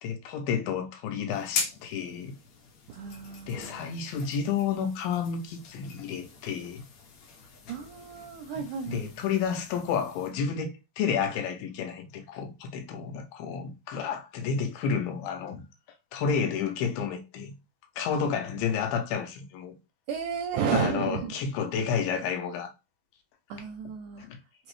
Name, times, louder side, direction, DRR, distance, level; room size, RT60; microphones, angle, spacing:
voice 1, 0.0-2.3 3.5-6.8 8.9-15.6 16.1-17.5 18.0-19.8 20.7-22.7 24.2-24.4, left 6 dB, 85° left, 2.4 m, -31 dB
sound 1, 1.3-10.3, left 5 dB, 65° left, 1.9 m, -41 dB
voice 2, 2.9-3.9 7.7-9.1 20.1-21.3 23.5-24.3, right 7 dB, 85° right, 1.8 m, -32 dB
5.5 x 2.0 x 3.1 m
omnidirectional pair, 4.0 m